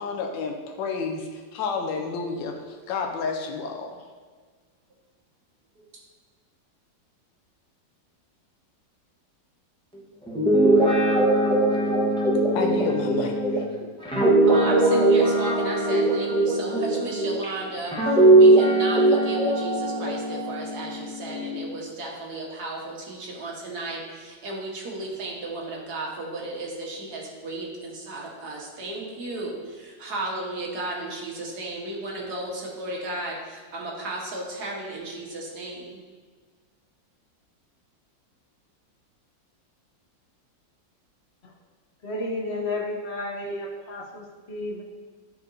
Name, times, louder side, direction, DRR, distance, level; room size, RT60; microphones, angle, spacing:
voice 1, 0.0-4.0 12.5-13.6, left 4 dB, 80° left, 2 dB, 1.3 m, -30 dB
Guitar, 10.3-17.5 17.9-21.6, right 2 dB, 5° left, 0.5 m, -20 dB
voice 2, 14.5-36.0, right 2 dB, 65° right, -2 dB, 1.7 m, -34 dB
voice 3, 42.0-44.8, left 2 dB, 50° left, 0 dB, 0.8 m, -32 dB
9.7 x 4.7 x 2.6 m, 1.5 s
omnidirectional pair, 2.0 m